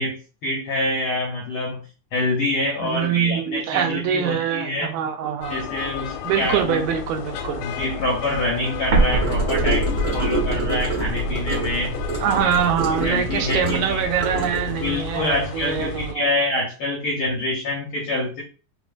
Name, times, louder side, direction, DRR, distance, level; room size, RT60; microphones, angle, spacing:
voice 1, 0.0-5.0 5.5-6.8 7.2-9.9 10.1-11.9 12.4-12.5 13.0-14.0 14.7-18.4, left 1 dB, 70° left, 1.3 m, -26 dB
voice 2, 2.8-5.6 6.2-7.6 12.2-16.3, right 8 dB, 80° right, 1.9 m, -24 dB
sound 1, 5.4-16.1, left 5 dB, 85° left, 2.0 m, -32 dB
Explosion, 8.9-13.7, right 2 dB, 60° right, 1.4 m, -25 dB
Gurgling / Car passing by / Sink (filling or washing), 9.2-14.9, right 3 dB, 40° right, 1.2 m, -28 dB
4.3 x 3.8 x 2.4 m
omnidirectional pair, 3.5 m